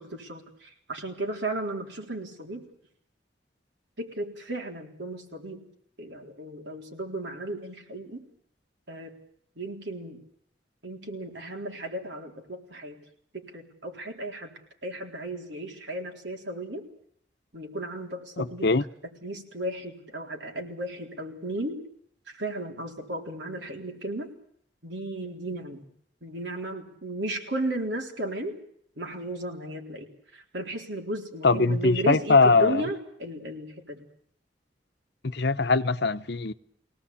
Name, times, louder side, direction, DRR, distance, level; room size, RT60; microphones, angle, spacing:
voice 1, 0.0-2.6 4.0-5.7 6.0-8.2 8.9-9.1 9.6-10.2 10.8-13.0 13.3-14.5 14.8-16.8 17.5-18.7 19.2-21.8 22.3-24.3 24.8-25.9 26.2-28.6 29.0-34.0, right 1 dB, 75° right, 3.9 m, -35 dB
voice 2, 18.4-18.8 31.4-32.8 35.2-36.5, left 3 dB, 65° left, 0.9 m, -22 dB
23.0 x 18.0 x 8.6 m
head